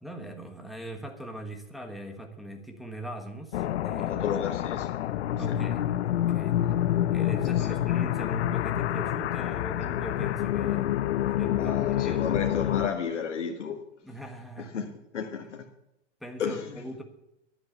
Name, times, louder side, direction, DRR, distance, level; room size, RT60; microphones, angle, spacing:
voice 1, 0.0-4.1 5.3-6.6 7.1-10.9 11.2-12.4 14.0-15.0 16.2-17.0, right 1 dB, ahead, 1.3 m, -40 dB
sound 1, 3.5-12.9, left 12 dB, 70° left, 0.7 m, -27 dB
voice 2, 4.1-4.9 5.5-5.6 7.5-7.8 11.5-13.8 14.6-15.7 16.4-16.8, left 6 dB, 90° left, 1.4 m, -33 dB
10.5 x 8.0 x 8.1 m
hypercardioid pair, 125°, 35 cm